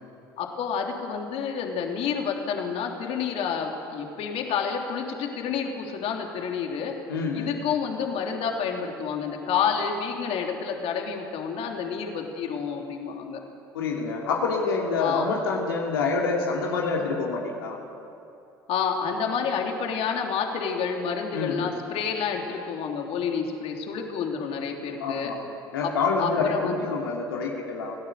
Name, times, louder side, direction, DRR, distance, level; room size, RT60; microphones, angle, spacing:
voice 1, 0.4-6.9 7.3-13.4 15.0-15.3 17.0-17.1 18.7-25.3 25.8-25.9 26.2-26.8, left 6 dB, 55° left, 2 dB, 3.1 m, -29 dB
voice 2, 7.1-7.5 13.7-17.8 21.3-21.7 25.0-25.4 25.7-27.9, left 4 dB, 75° left, -2 dB, 2.8 m, -27 dB
27.5 x 17.5 x 6.8 m, 2.7 s
figure-of-eight pair, 60°, 12 cm